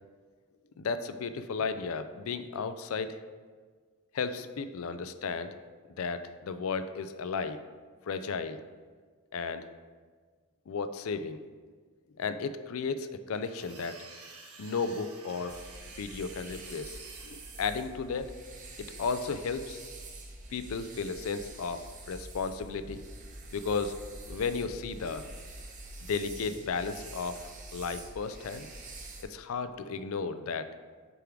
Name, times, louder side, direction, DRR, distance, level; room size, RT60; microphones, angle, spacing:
voice 1, 0.8-3.2 4.1-5.5 6.0-7.6 8.1-8.6 9.3-9.7 10.7-11.4 12.2-14.1 14.6-15.6 16.0-17.0 17.2-18.3 18.8-19.8 20.5-23.0 23.5-24.0 24.3-25.3 26.0-28.7 29.2-30.7, left 5 dB, 70° left, 11 dB, 0.4 m, -34 dB
sound 1, 13.3-17.6, right 3 dB, 80° right, 1.1 m, -51 dB
sound 2, 15.5-29.2, right 2 dB, 35° right, 0.8 m, -46 dB
6.8 x 4.6 x 3.7 m, 1.5 s
head